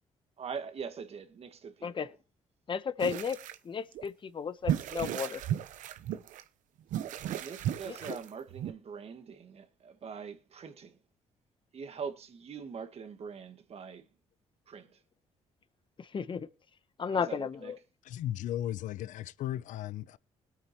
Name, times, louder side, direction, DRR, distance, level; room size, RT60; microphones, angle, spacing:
voice 1, 0.4-2.1 7.4-11.0 11.7-14.1 14.7-15.0 17.1-17.7, right 6 dB, 50° right, 1.8 m, -43 dB
voice 2, 2.7-3.4 3.6-5.4 7.8-8.2 16.0-16.5 17.0-17.8, left 6 dB, 40° left, 0.9 m, -34 dB
sound 1, 3.0-3.6 3.9-4.0 4.6-6.4 6.9-8.7, right 11 dB, 80° right, 0.9 m, -35 dB
voice 3, 18.0-20.2, left 12 dB, 75° left, 0.5 m, -36 dB
20.5 x 8.8 x 3.0 m
cardioid pair, 80°, 13 cm